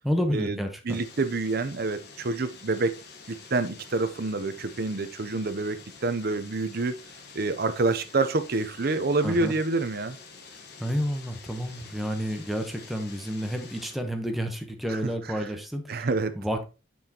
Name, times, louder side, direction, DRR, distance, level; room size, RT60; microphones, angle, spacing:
voice 1, 0.0-1.0 9.2-9.6 10.8-16.1 16.3-16.6, equal, ahead, 1.0 m, -30 dB
sound 1, 0.9-14.0, left 4 dB, 60° left, 1.3 m, -48 dB
voice 2, 0.9-3.0 3.3-7.0 7.3-10.2 14.9-15.0 15.9-16.4, right 3 dB, 55° right, 0.7 m, -27 dB
7.0 x 6.2 x 2.9 m
head